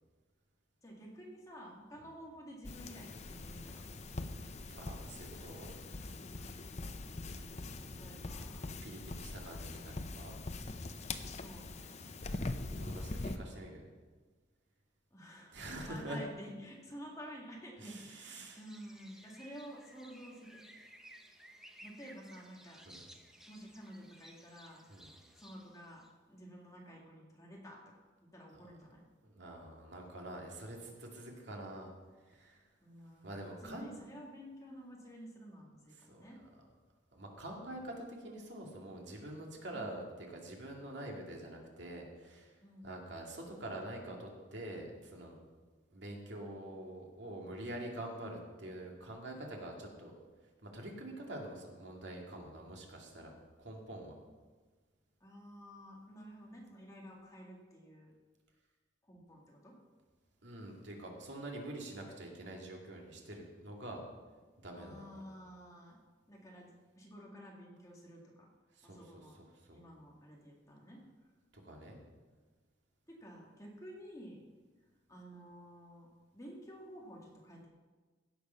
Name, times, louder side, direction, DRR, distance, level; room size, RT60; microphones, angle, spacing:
voice 1, 0.8-3.9 7.0-8.7 11.1-12.2 15.1-15.5 15.8-20.6 21.8-22.8 23.4-24.8 25.4-27.8 28.3-29.1 32.8-36.4 39.7-40.0 42.6-42.9 55.2-58.1 59.0-59.8 64.7-66.0 66.3-68.5 68.8-69.4 69.7-71.0 73.1-74.5 74.8-76.1 76.3-77.7, equal, 20° left, -2 dB, 2.1 m, -51 dB
sound 1, 2.6-13.4, left 2 dB, 35° left, 0.6 m, -43 dB
voice 2, 4.7-5.7 8.8-10.4 12.8-13.9 15.5-16.2 17.8-18.6 22.9-23.0 24.9-25.1 28.5-28.6 29.2-31.9 32.3-32.6 33.2-33.9 36.1-36.5 37.1-45.3 45.9-50.1 50.6-53.3 53.6-54.2 60.4-64.0 64.6-65.3 68.8-69.2 69.6-69.8 71.5-72.0, right 1 dB, 70° right, 0 dB, 2.3 m, -46 dB
sound 2, 18.5-26.1, right 1 dB, 5° right, 0.8 m, -58 dB
16.0 x 6.8 x 5.7 m, 1.3 s
head